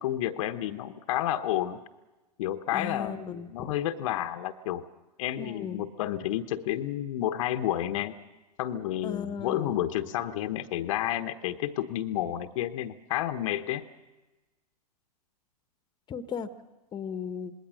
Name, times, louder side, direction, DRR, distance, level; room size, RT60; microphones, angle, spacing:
voice 1, 0.0-1.8 2.4-4.8 5.2-8.1 8.6-13.8, left 12 dB, 55° left, 8 dB, 1.1 m, -30 dB
voice 2, 2.7-3.8 5.4-5.8 9.0-9.8 16.1-16.5 16.9-17.5, left 7 dB, 20° left, 11 dB, 1.3 m, -36 dB
27.0 x 20.5 x 6.3 m, 1.1 s
hypercardioid pair, 110°, 20 cm